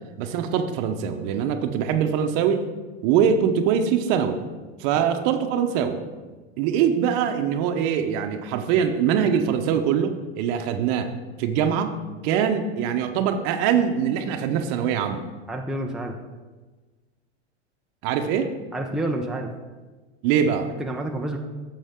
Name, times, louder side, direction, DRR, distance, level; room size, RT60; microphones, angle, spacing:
voice 1, 0.2-2.6 3.0-4.4 4.8-6.0 6.6-11.1 11.4-11.9 12.2-15.2 18.0-18.5 20.2-20.7, right 8 dB, 55° right, 7 dB, 1.0 m, -23 dB
voice 2, 15.5-16.1 18.7-19.5 20.8-21.4, right 1 dB, ahead, 1 dB, 0.7 m, -29 dB
11.0 x 7.4 x 3.7 m, 1.3 s
hypercardioid pair, 105°, 33 cm